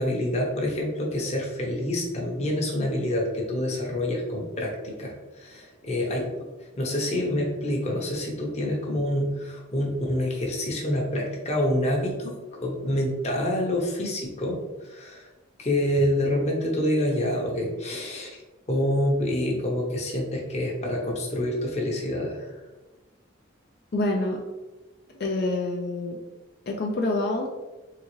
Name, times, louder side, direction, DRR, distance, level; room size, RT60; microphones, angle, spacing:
voice 1, 0.0-6.3 6.8-15.3 15.6-18.4 18.7-22.5, left 1 dB, 35° left, -1 dB, 0.9 m, -27 dB
voice 2, 23.9-24.4 25.2-26.2 26.7-27.5, left 2 dB, 50° left, 1 dB, 0.4 m, -26 dB
3.8 x 3.6 x 3.1 m, 1.2 s
head